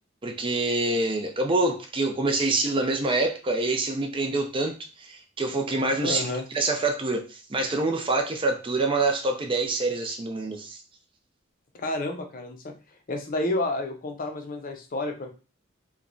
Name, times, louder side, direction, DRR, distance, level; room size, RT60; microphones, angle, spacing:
voice 1, 0.2-6.3 6.5-10.8, right 2 dB, 25° right, 0.5 m, -26 dB
voice 2, 6.0-6.4 11.7-12.7 13.1-15.3, left 2 dB, 45° left, 0.6 m, -30 dB
3.0 x 2.2 x 3.8 m
head